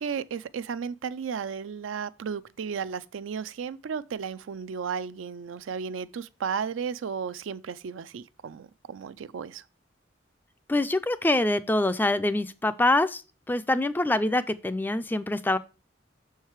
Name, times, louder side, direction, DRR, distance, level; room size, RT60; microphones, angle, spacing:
voice 1, 0.0-9.6, right 6 dB, 80° right, 0.4 m, -34 dB
voice 2, 10.7-13.2 13.5-15.6, left 2 dB, 10° left, 0.3 m, -25 dB
6.5 x 4.7 x 4.6 m
head